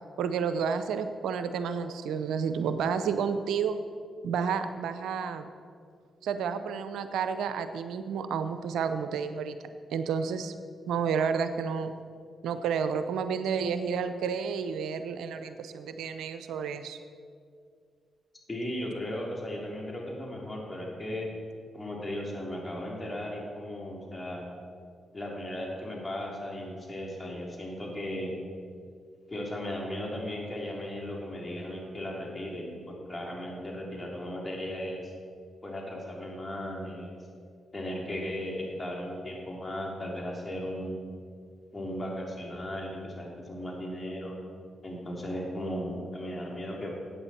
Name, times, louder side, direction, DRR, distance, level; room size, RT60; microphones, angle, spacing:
voice 1, 0.2-3.8 4.2-5.5 6.2-9.6 9.9-10.5 10.9-11.9 12.4-17.0, right 6 dB, 80° right, 10 dB, 0.5 m, -30 dB
voice 2, 18.5-21.3 21.7-24.5 25.1-28.3 29.3-35.1 35.6-37.2 37.7-41.0 41.7-44.4 44.8-47.0, left 1 dB, 30° left, -1 dB, 3.3 m, -36 dB
14.0 x 8.8 x 4.3 m, 2.2 s
supercardioid pair, 50°, 0 cm